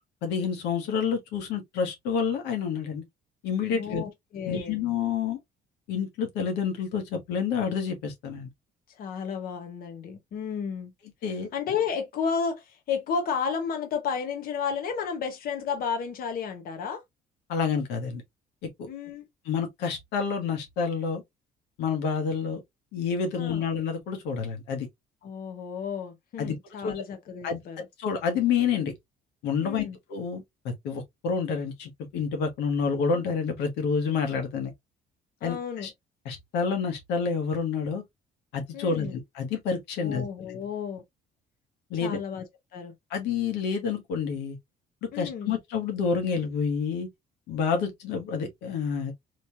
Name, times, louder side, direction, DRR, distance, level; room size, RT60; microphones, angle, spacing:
voice 1, 0.2-3.0 3.4-4.0 4.4-5.4 5.9-8.5 11.2-11.5 17.5-18.2 19.4-21.2 21.8-22.6 22.9-24.9 26.4-26.5 26.8-27.0 27.4-27.6 28.0-28.9 29.4-34.7 35.4-35.9 36.2-38.0 38.5-40.2 41.9-42.2 43.1-44.6 45.1-47.1 47.5-49.1, left 6 dB, 85° left, 1.2 m, -28 dB
voice 2, 3.7-4.8 8.9-10.9 11.5-17.0 18.9-19.2 23.3-23.6 25.2-27.8 29.6-30.0 35.4-35.9 38.7-39.1 40.0-41.0 42.0-42.4 42.7-42.9 45.1-45.5, left 6 dB, 60° left, 1.1 m, -32 dB
3.2 x 2.9 x 2.7 m
cardioid pair, 110°, 17 cm